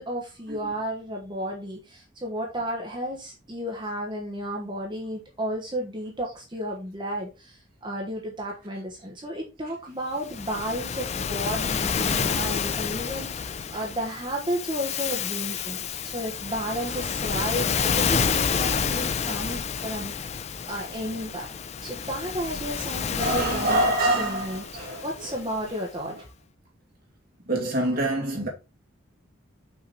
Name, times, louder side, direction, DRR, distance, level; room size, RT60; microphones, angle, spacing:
voice 1, 0.0-21.5 21.8-23.8 24.2-24.6 25.0-26.3, equal, 25° right, 1.3 m, -33 dB
Waves surf, 10.2-25.7, left 6 dB, 30° left, 0.4 m, -29 dB
voice 2, 23.1-25.4 26.1-26.2 27.4-28.5, right 1 dB, 45° right, 2.6 m, -26 dB
5.8 x 5.0 x 4.1 m
head